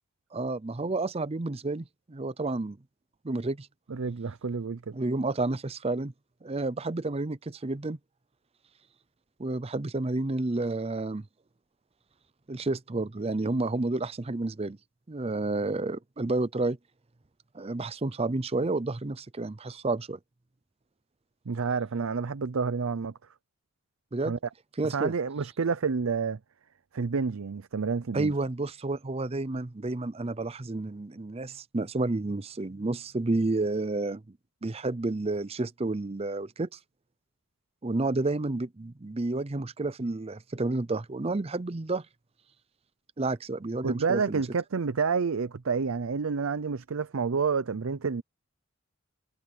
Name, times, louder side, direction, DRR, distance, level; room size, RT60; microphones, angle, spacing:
voice 1, 0.3-2.8 3.2-3.7 4.9-6.1 6.4-8.0 9.4-11.3 12.5-14.8 15.1-16.8 17.5-20.2 24.1-24.3 24.8-25.1 28.1-34.2 34.6-36.8 37.8-42.1 43.2-44.4, right 2 dB, 30° right, 0.6 m, -30 dB
voice 2, 3.9-5.0 21.5-23.1 24.3-24.4 24.9-26.4 26.9-28.3 43.8-48.2, right 5 dB, 85° right, 0.6 m, -29 dB
head